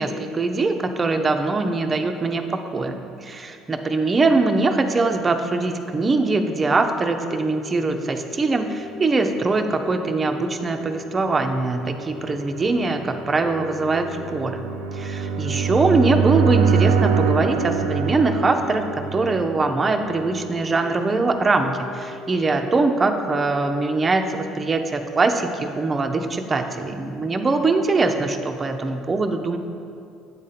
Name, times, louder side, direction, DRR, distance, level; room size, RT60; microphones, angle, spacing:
voice 1, 0.0-14.1 14.3-14.6 14.9-29.6, right 3 dB, 30° right, 6 dB, 0.5 m, -22 dB
sound 1, 7.3-24.5, left 2 dB, 80° left, 0.4 m, -40 dB
sound 2, 9.9-20.6, right 6 dB, 90° right, 0.3 m, -25 dB
8.4 x 3.7 x 4.1 m, 2.5 s
supercardioid pair, 80°, 0 cm